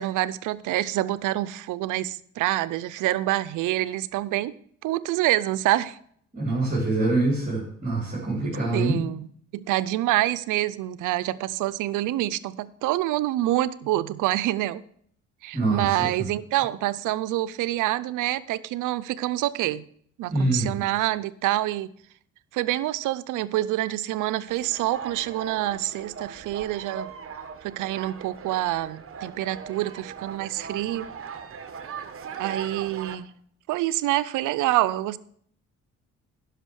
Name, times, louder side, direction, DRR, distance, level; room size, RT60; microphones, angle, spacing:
voice 1, 0.0-4.6 4.8-6.0 8.7-9.3 9.5-14.8 15.4-19.9 20.2-21.9 22.5-27.1 27.6-31.1 32.4-33.3 33.7-35.2, right 15 dB, 90° right, 0.6 m, -26 dB
voice 2, 6.3-9.0 15.5-16.3 20.3-20.8, right 2 dB, 25° right, 3.6 m, -25 dB
sound 1, 24.5-33.2, right 6 dB, 45° right, 1.1 m, -39 dB
11.0 x 5.9 x 6.3 m
cardioid pair, 90°, 30 cm